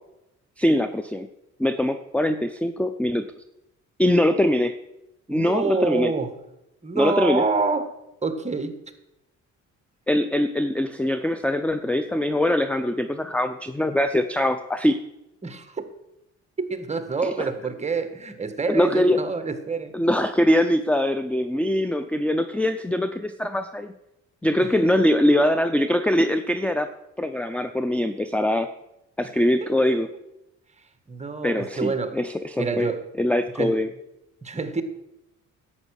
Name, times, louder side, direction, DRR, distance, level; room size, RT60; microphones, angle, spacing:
voice 1, 0.6-1.3 1.6-3.3 4.0-4.7 5.3-6.1 7.0-7.4 10.1-15.0 17.2-17.5 18.7-19.2 19.9-23.9 24.4-26.9 27.2-28.7 29.2-30.1 31.4-32.9 33.2-33.9, left 1 dB, 5° left, 0.5 m, -22 dB
voice 2, 5.3-6.3 6.8-7.9 8.2-8.8 15.4-15.8 16.6-19.9 24.6-24.7 29.2-29.3 29.6-30.0 31.1-32.2 32.6-33.0 33.6-33.8 34.4-34.8, right 4 dB, 20° right, 1.4 m, -27 dB
11.0 x 8.2 x 6.4 m
cardioid pair, 90°, 30 cm